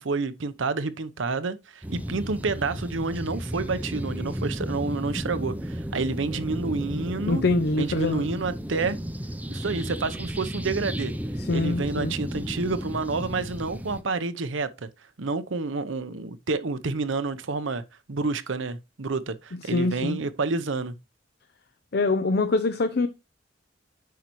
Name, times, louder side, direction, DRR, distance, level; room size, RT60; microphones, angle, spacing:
voice 1, 0.0-7.5 7.8-9.0 9.5-11.1 11.5-14.9 15.2-17.8 18.1-21.0, right 3 dB, 80° right, 0.8 m, -29 dB
sound 1, 1.8-14.0, equal, 10° right, 0.5 m, -33 dB
voice 2, 7.3-8.2 11.4-12.1 19.7-20.2 21.9-23.1, left 3 dB, 55° left, 0.5 m, -24 dB
9.3 x 5.8 x 3.0 m
head